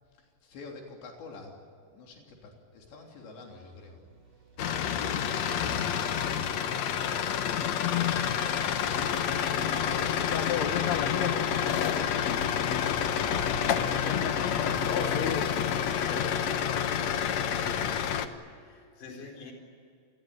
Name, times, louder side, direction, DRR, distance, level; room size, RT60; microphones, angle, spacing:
voice 1, 0.2-1.6 1.9-4.1 4.7-5.0 11.1-15.3 19.1-19.3, left 3 dB, 85° left, 1 dB, 5.6 m, -45 dB
sound 1, 2.9-15.4, right 4 dB, 45° right, 4.7 m, -50 dB
sound 2, 4.6-18.3, left 8 dB, 70° left, 1.6 m, -28 dB
voice 2, 17.5-18.3 18.6-19.5, left 5 dB, 50° left, 1 dB, 5.7 m, -44 dB
28.5 x 20.5 x 9.3 m, 2.3 s
omnidirectional pair, 4.9 m